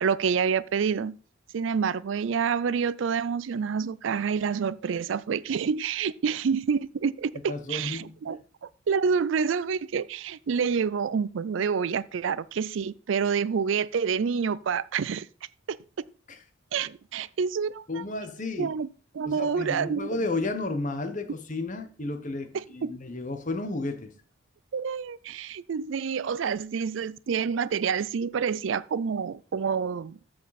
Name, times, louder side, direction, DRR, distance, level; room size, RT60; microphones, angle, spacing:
voice 1, 0.0-1.2 1.5-8.4 8.9-15.3 15.7-15.8 16.7-17.9 18.6-18.9 19.1-20.1 22.5-23.0 24.7-30.2, right 6 dB, 70° right, 0.4 m, -28 dB
voice 2, 7.5-8.1 16.3-16.4 17.9-18.7 19.2-24.1, left 2 dB, 40° left, 1.1 m, -32 dB
13.5 x 5.1 x 4.2 m
head